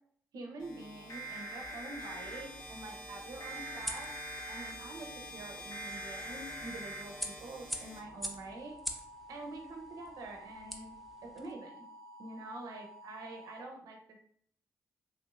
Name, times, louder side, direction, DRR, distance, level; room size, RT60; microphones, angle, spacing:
voice 1, 0.3-4.1 4.5-8.8 9.3-10.9 11.2-11.8 12.2-14.2, right 2 dB, 75° right, 2 dB, 0.6 m, -46 dB
sound 1, 0.6-8.6, equal, 90° left, 1.1 m, -48 dB
sound 2, 1.1-2.4 3.4-4.7 5.7-7.0 8.0-13.6, right 1 dB, 65° left, 0.6 m, -47 dB
sound 3, 1.6-11.5, equal, ahead, 0.5 m, -46 dB
3.3 x 2.8 x 2.5 m, 0.62 s
supercardioid pair, 55°, 6 cm